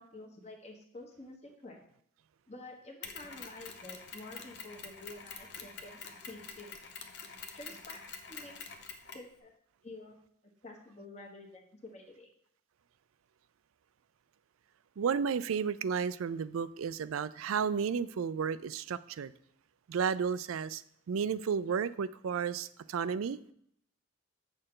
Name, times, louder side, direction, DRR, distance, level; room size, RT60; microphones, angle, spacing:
voice 1, 0.0-1.8 2.5-6.8 7.5-8.5 9.1-9.5 9.8-10.2 10.6-12.3, left 2 dB, 35° left, 1 dB, 1.3 m, -49 dB
Mechanisms, 3.0-9.3, left 5 dB, 55° left, 0.8 m, -47 dB
voice 2, 15.0-19.3 19.9-20.8 21.1-23.4, right 6 dB, 90° right, 16 dB, 0.4 m, -32 dB
7.8 x 6.5 x 3.8 m, 0.70 s
head